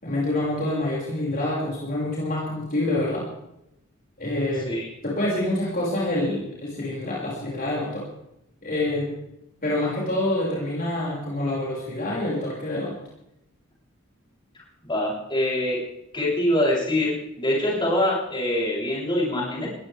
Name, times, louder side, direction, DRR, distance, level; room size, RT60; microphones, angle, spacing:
voice 1, 0.0-3.3 4.2-4.7 5.0-8.1 8.6-9.1 9.6-13.0, left 1 dB, 40° left, -5 dB, 6.2 m, -26 dB
voice 2, 14.8-15.8 16.1-19.7, left 1 dB, 20° left, -5 dB, 7.9 m, -24 dB
21.5 x 16.5 x 3.6 m, 0.83 s
head